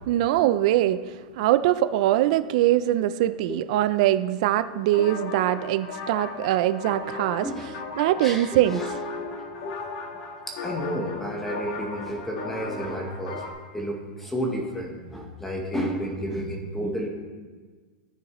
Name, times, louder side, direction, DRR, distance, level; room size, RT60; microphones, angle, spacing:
voice 1, 0.1-1.0 1.4-7.5 8.0-8.8, right 14 dB, 50° right, 12 dB, 0.3 m, -22 dB
sound 1, 4.9-13.5, left 4 dB, 45° left, 1.3 m, -36 dB
voice 2, 7.1-7.7 8.0-8.9 9.3-9.8 10.5-13.4 13.7-17.1, equal, 5° left, 1 dB, 0.9 m, -32 dB
11.0 x 9.1 x 3.0 m, 1.5 s
supercardioid pair, 165°, 5 cm